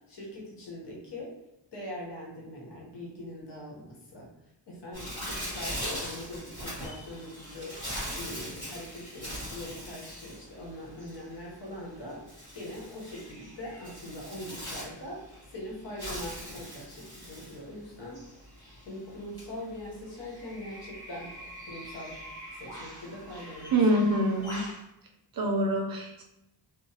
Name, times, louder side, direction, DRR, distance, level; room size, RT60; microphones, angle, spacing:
voice 1, 0.1-1.3 1.7-4.3 4.7-7.8 8.1-12.2 12.5-18.2 18.8-21.3 21.7-22.1 22.6-23.8, left 1 dB, 65° left, -3 dB, 1.0 m, -42 dB
Bird, 4.9-24.8, equal, 10° left, 1.4 m, -41 dB
voice 2, 23.7-24.6 25.4-26.2, right 1 dB, 55° right, 1 dB, 0.5 m, -25 dB
2.9 x 2.0 x 2.8 m, 0.85 s
wide cardioid pair, 145°, 44 cm